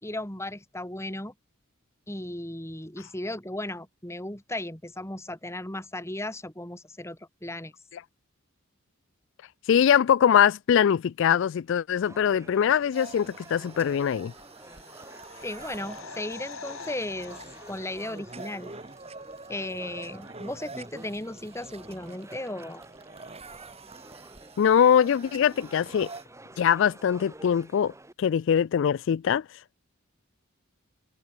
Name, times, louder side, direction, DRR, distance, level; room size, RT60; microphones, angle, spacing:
voice 1, 0.0-1.3 2.1-7.7 15.4-18.7 19.5-22.8, left 1 dB, 15° left, 3.7 m, -36 dB
voice 2, 9.7-14.3 24.6-26.1 26.6-27.9 28.2-29.4, left 8 dB, 60° left, 0.3 m, -22 dB
sound 1, 12.0-28.1, right 2 dB, 15° right, 2.3 m, -50 dB
sound 2, 12.9-26.2, right 3 dB, 30° right, 4.8 m, -46 dB
sound 3, 14.2-18.9 19.2-19.3, left 4 dB, 80° left, 7.6 m, -46 dB
head